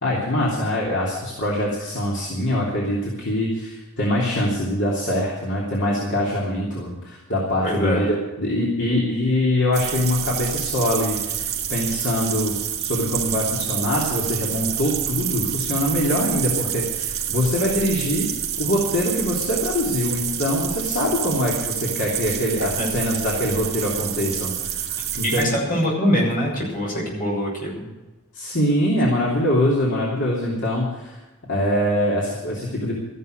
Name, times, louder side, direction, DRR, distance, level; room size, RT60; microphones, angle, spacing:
voice 1, 0.0-18.3 18.6-25.5 28.3-31.2 31.5-32.9, left 1 dB, 60° left, -4 dB, 3.0 m, -23 dB
voice 2, 7.6-8.1 22.7-22.9 25.4-27.9, equal, 40° left, -2 dB, 6.4 m, -23 dB
sound 1, 9.7-25.4, right 9 dB, 50° right, 2.4 m, -28 dB
14.0 x 11.5 x 6.6 m, 1.1 s
head